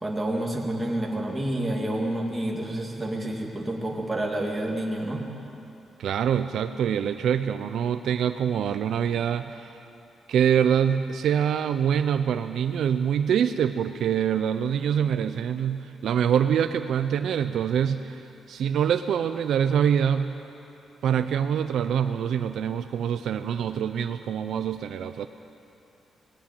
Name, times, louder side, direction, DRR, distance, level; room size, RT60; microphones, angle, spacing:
voice 1, 0.0-5.2, right 1 dB, 10° right, -1 dB, 2.4 m, -29 dB
voice 2, 6.0-9.7 10.3-18.2 18.5-20.3 21.0-25.3, right 8 dB, 70° right, 10 dB, 0.6 m, -25 dB
19.5 x 17.0 x 9.0 m, 2.9 s
wide cardioid pair, 175°, 0 cm